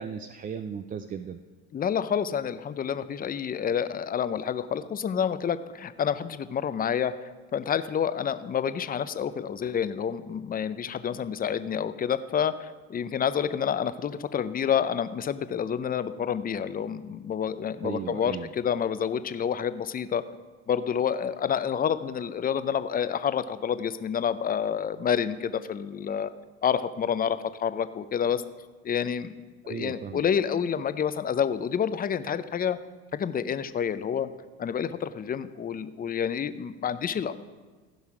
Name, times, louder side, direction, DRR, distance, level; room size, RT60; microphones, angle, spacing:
voice 1, 0.0-1.4 17.8-18.5 29.6-30.2, right 7 dB, 25° right, 9 dB, 0.4 m, -36 dB
voice 2, 1.7-20.2 20.7-26.3 26.6-28.4 28.8-29.3 29.7-32.8 33.1-34.3 34.6-37.3, left 8 dB, 25° left, 13 dB, 0.5 m, -28 dB
15.5 x 5.6 x 4.8 m, 1.4 s
supercardioid pair, 80°, 36 cm